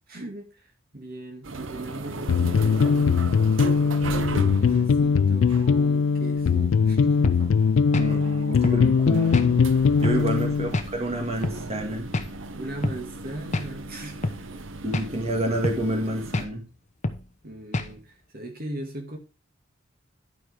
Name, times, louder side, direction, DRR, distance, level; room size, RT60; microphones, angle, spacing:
voice 1, 0.1-3.4 4.3-7.4 7.8-8.1 12.5-14.6 17.4-19.2, right 1 dB, 50° right, 1.9 m, -39 dB
sound 1, 1.4-16.5, right 3 dB, 70° right, 0.9 m, -37 dB
sound 2, 2.3-10.7, left 5 dB, 80° left, 0.4 m, -21 dB
sound 3, 7.2-7.4 7.9-8.1 8.6-8.8 9.3-9.5 10.0-10.2 10.7-10.9 11.4-11.6 12.1-12.3 12.8-13.0 13.5-13.7 14.2-14.4 14.9-15.1 15.6-15.8 16.3-16.5 17.0-17.2 17.7-17.9, left 2 dB, 40° left, 1.0 m, -27 dB
voice 2, 8.0-9.6 10.0-12.1 14.8-16.6, right 1 dB, 30° right, 2.0 m, -28 dB
11.5 x 5.1 x 4.8 m
head